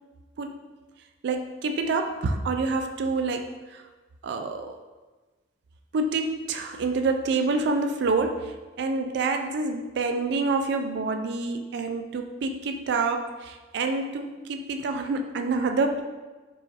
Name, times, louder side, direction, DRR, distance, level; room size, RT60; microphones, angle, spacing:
voice 1, 1.2-3.8 4.2-4.8 5.9-16.0, right 3 dB, 65° right, 5 dB, 0.3 m, -27 dB
4.8 x 2.6 x 2.4 m, 1.2 s
head